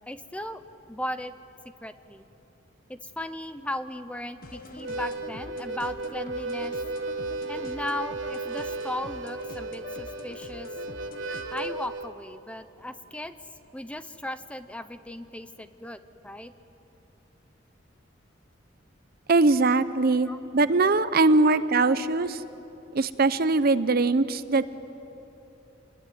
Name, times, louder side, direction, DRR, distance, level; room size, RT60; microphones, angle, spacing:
voice 1, 0.1-0.6 0.9-1.3 1.8-2.3 2.9-6.8 7.5-10.7 11.5-13.3 13.7-16.5 20.2-20.4 21.4-21.6, left 1 dB, 5° left, 11 dB, 0.8 m, -36 dB
sound 1, 4.4-11.8, left 2 dB, 50° left, 1.5 m, -44 dB
Harmonica, 4.7-12.1, right 2 dB, 85° right, 1.3 m, -35 dB
voice 2, 19.3-22.4 22.9-24.6, right 3 dB, 50° right, 14 dB, 0.7 m, -21 dB
28.0 x 21.0 x 9.5 m, 3.0 s
head